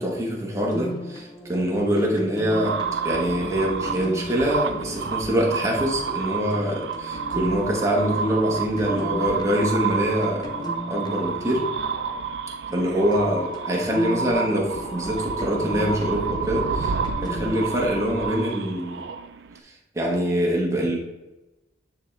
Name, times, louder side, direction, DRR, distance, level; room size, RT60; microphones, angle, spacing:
voice 1, 0.0-11.7 12.7-16.9 17.2-19.0 19.9-21.0, equal, 15° right, -2 dB, 1.2 m, -24 dB
sound 1, 0.7-12.7 13.1-17.9, equal, 20° left, 0.6 m, -38 dB
sound 2, 2.5-19.6, right 5 dB, 70° right, 0.4 m, -30 dB
9.6 x 3.6 x 3.2 m, 1.1 s
head